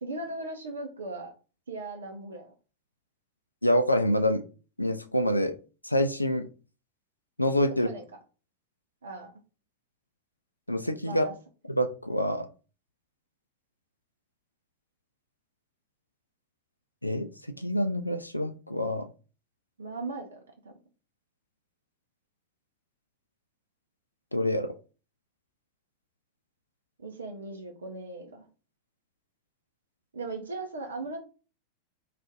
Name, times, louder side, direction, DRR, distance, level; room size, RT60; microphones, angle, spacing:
voice 1, 0.0-1.3 1.7-2.5 7.8-8.0 9.0-9.3 11.0-11.3 19.8-20.7 27.0-28.5 30.1-31.2, right 2 dB, 70° right, 4 dB, 0.6 m, -38 dB
voice 2, 3.6-4.4 4.8-5.5 5.8-6.5 7.4-7.9 10.7-11.3 11.8-12.5 17.0-17.3 17.6-19.1 24.3-24.7, left 1 dB, 85° left, 9 dB, 0.3 m, -26 dB
2.6 x 2.4 x 3.5 m, 0.35 s
figure-of-eight pair, 90°, 0 cm